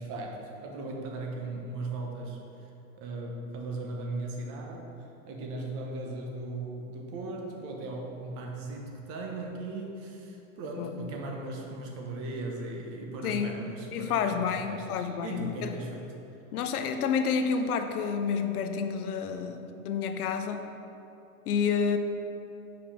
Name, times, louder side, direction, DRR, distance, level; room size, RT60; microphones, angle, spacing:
voice 1, 0.0-2.4 3.0-4.9 5.3-16.0, right 2 dB, 30° right, 0 dB, 1.0 m, -37 dB
voice 2, 13.2-15.7 16.5-20.6 21.5-22.0, left 6 dB, 85° left, 7 dB, 0.8 m, -29 dB
5.4 x 5.2 x 5.7 m, 2.9 s
supercardioid pair, 150°, 43 cm